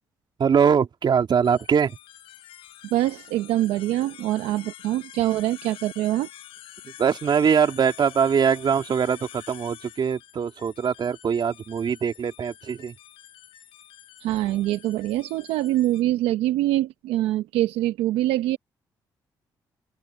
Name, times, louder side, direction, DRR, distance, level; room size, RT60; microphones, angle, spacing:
voice 1, 0.4-2.0 7.0-12.9, right 7 dB, 55° right, 2.5 m, -22 dB
sound 1, 1.4-16.0, left 13 dB, 80° left, 7.2 m, -47 dB
voice 2, 2.9-6.3 14.2-18.6, right 15 dB, 85° right, 0.9 m, -24 dB
open air
supercardioid pair, 60°, 9 cm